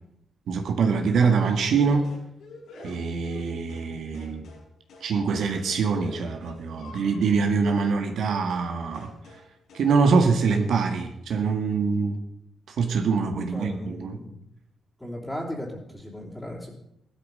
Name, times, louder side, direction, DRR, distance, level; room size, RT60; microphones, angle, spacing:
voice 1, 0.5-2.1 2.8-4.5 5.0-9.1 9.7-12.2 12.7-14.2, right 5 dB, 70° right, 5 dB, 1.7 m, -24 dB
sound 1, 1.1-4.6 4.9-5.1 5.3-7.4 8.5-8.7 8.9-9.4 9.7-9.9 10.1-10.6, left 2 dB, 90° left, 6.6 m, -47 dB
voice 2, 13.3-14.4 15.0-16.7, equal, 5° left, -6 dB, 3.2 m, -36 dB
17.0 x 12.5 x 5.4 m, 0.77 s
wide cardioid pair, 150°, 0 cm